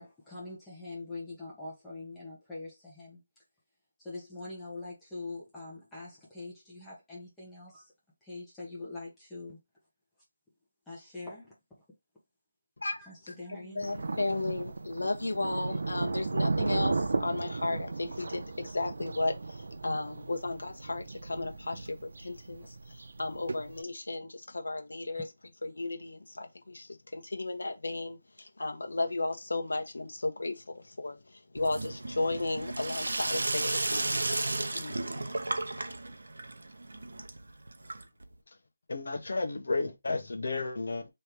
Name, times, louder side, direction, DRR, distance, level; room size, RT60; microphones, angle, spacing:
voice 1, 0.0-3.2 4.0-7.9 8.2-9.6 10.9-11.8 13.0-13.9 23.3-23.4 25.1-25.2, left 2 dB, 5° left, 1.0 m, -44 dB
voice 2, 13.7-25.2 25.6-34.4 34.7-35.3, left 2 dB, 80° left, 1.3 m, -34 dB
Thunder, 13.8-23.8, right 3 dB, 50° right, 0.5 m, -35 dB
Sink (filling or washing), 31.6-38.3, right 2 dB, 80° right, 0.8 m, -34 dB
voice 3, 38.9-41.1, left 3 dB, 50° left, 1.1 m, -32 dB
3.3 x 3.2 x 4.4 m
figure-of-eight pair, 180°, 0 cm